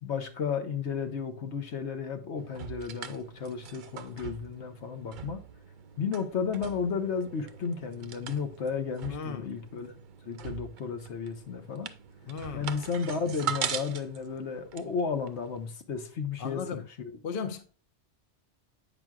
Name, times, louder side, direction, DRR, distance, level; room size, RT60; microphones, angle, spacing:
voice 1, 0.0-5.4 6.0-10.0 10.3-11.9 12.5-16.6 17.4-17.5, left 6 dB, 75° left, 1.2 m, -33 dB
sound 1, 2.4-15.7, right 8 dB, 55° right, 0.6 m, -41 dB
voice 2, 9.1-9.5 12.3-12.7 16.4-16.9 17.2-17.7, left 6 dB, 55° left, 0.8 m, -36 dB
8.8 x 6.0 x 2.3 m
omnidirectional pair, 1.2 m